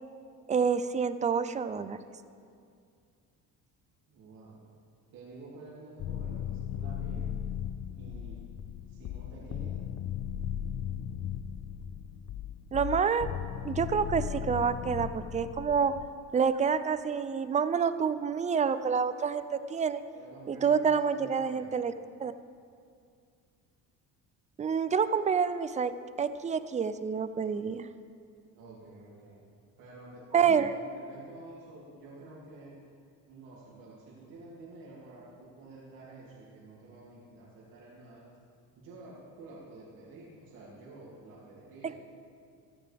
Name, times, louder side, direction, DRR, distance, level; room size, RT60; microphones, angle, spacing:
voice 1, 0.5-2.0 12.7-13.3 13.6-15.9 16.3-20.0 20.5-21.9 22.2-22.3 24.6-25.9 26.2-27.9 30.3-30.7, right 6 dB, 20° right, 12 dB, 0.4 m, -28 dB
voice 2, 4.1-4.6 5.1-7.3 8.0-8.4 8.8-9.8 20.1-21.8 28.5-29.4 29.8-32.7 33.3-38.2 38.8-42.0, right 2 dB, 80° right, -6 dB, 2.7 m, -50 dB
sound 1, 6.0-16.1, left 10 dB, 50° left, 0.5 m, -37 dB
15.0 x 14.0 x 3.5 m, 2.3 s
cardioid pair, 145°, 34 cm